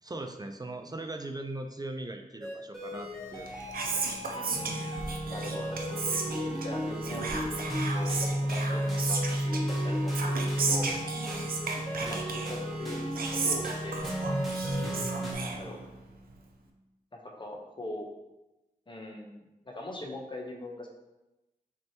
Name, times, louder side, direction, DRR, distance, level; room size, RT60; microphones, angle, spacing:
voice 1, 0.0-4.3 12.0-12.2, right 2 dB, 25° right, 6 dB, 0.4 m, -40 dB
sound 1, 2.4-15.3, equal, ahead, 1.4 m, -33 dB
Whispering, 3.3-16.1, right 4 dB, 85° right, 0.6 m, -35 dB
voice 2, 4.3-7.7 7.9-11.0 11.9-13.0 13.3-14.1 14.7-15.8 17.1-18.1 18.9-20.9, left 1 dB, 35° left, 0 dB, 0.9 m, -42 dB
6.0 x 3.0 x 2.9 m, 0.99 s
wide cardioid pair, 65°, 15 cm